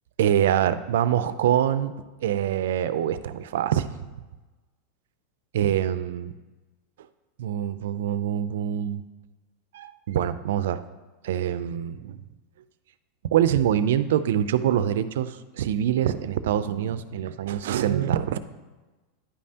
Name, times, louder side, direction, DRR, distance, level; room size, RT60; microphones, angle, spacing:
voice 1, 0.2-1.9 2.2-3.9 5.5-6.3 7.4-9.0 9.7-10.8 11.2-12.2 13.3-18.4, right 10 dB, 80° right, 13 dB, 0.4 m, -24 dB
9.7 x 5.4 x 2.8 m, 1.2 s
supercardioid pair, 180°, 0 cm